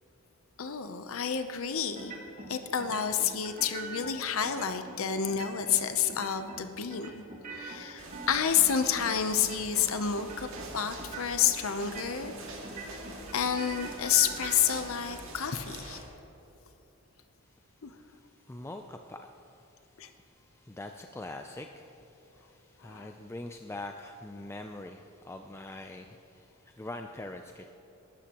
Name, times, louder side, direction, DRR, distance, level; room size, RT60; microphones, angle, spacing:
voice 1, 0.6-2.1 2.5-7.2 7.5-10.5 10.7-12.3 13.3-16.0 17.8-17.9 20.0-20.1 22.8-23.1, left 8 dB, 65° left, 9 dB, 0.7 m, -29 dB
sound 1, 2.0-2.5 2.8-4.1 4.4-5.0 5.3-5.8 6.1-6.6 6.9-9.1 9.4-9.9 10.2-10.7 11.0-11.5 11.8-12.4 12.6-14.8, right 3 dB, 35° right, 1.5 m, -43 dB
sound 2, 8.0-16.0, right 2 dB, 60° right, 2.0 m, -45 dB
voice 2, 17.4-27.7, left 2 dB, 10° left, 5 dB, 0.3 m, -44 dB
19.5 x 12.5 x 3.0 m, 2.9 s
head